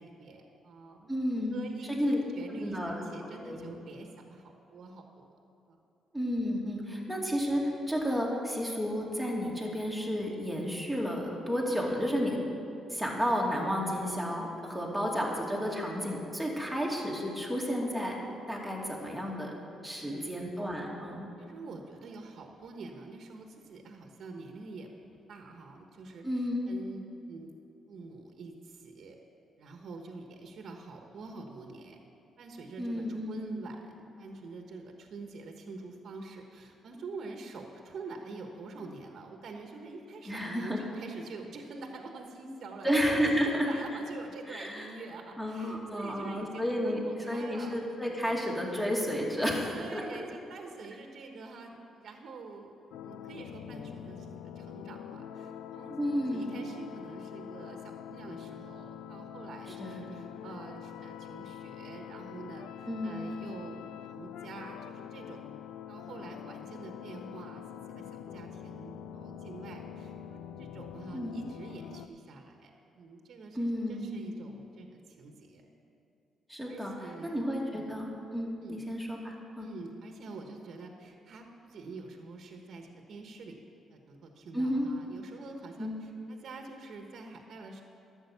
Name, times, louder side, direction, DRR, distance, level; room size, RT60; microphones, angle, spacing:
voice 1, 0.0-1.1 1.5-5.3 5.7-5.8 20.0-20.4 21.4-27.5 27.9-29.2 29.6-32.0 32.4-48.5 49.7-52.7 53.0-56.0 56.3-65.5 65.9-72.7 73.0-75.7 76.7-77.4 77.7-78.0 78.6-78.8 79.6-83.6 83.9-87.8, right 3 dB, 65° right, 3 dB, 1.2 m, -46 dB
voice 2, 1.1-2.2 2.6-2.9 3.4-3.8 6.1-12.4 12.9-18.2 18.5-19.5 19.8-21.3 26.2-26.6 32.8-33.4 40.2-40.8 42.8-43.7 44.5-44.9 45.4-50.0 56.0-56.5 59.8-60.2 62.9-63.3 71.1-71.4 73.5-74.2 76.5-76.9 77.2-79.7 84.5-84.9 85.8-85.9, equal, 5° left, -2 dB, 2.4 m, -32 dB
sound 1, 52.9-72.1, left 9 dB, 90° left, 0.4 m, -45 dB
11.5 x 7.7 x 6.9 m, 2.9 s
cardioid pair, 90°, 0 cm